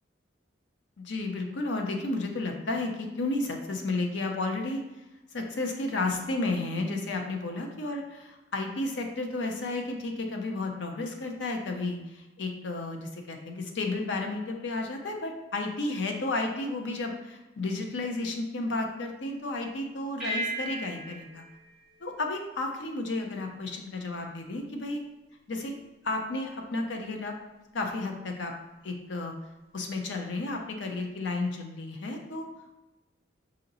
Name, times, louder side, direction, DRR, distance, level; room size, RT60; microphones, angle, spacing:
voice 1, 1.0-4.8 5.3-21.4 22.0-25.0 25.5-25.8 26.0-27.3 27.7-28.5 28.8-29.3 29.7-32.4, left 2 dB, 70° left, 3 dB, 0.6 m, -32 dB
sound 1, 20.2-23.0, right 1 dB, 5° right, 0.8 m, -37 dB
5.0 x 2.8 x 2.6 m, 1.0 s
head